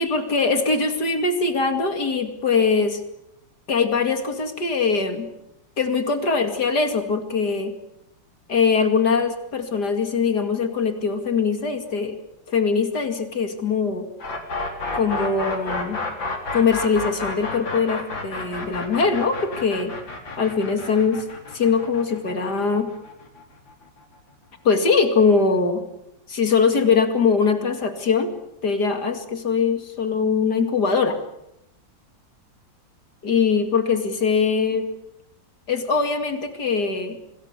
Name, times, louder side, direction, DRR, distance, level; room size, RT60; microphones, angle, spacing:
voice 1, 0.0-3.0 3.7-5.3 5.8-7.7 8.5-12.2 12.5-14.1 14.9-16.0 16.5-19.9 20.4-21.2 21.5-22.9 24.6-25.8 26.3-28.3 28.6-31.2 33.2-34.8 35.7-37.2, left 5 dB, 60° left, 7 dB, 3.0 m, -22 dB
sound 1, 14.2-24.0, left 3 dB, 80° left, 4.8 m, -31 dB
27.5 x 20.5 x 8.4 m, 0.84 s
omnidirectional pair, 2.1 m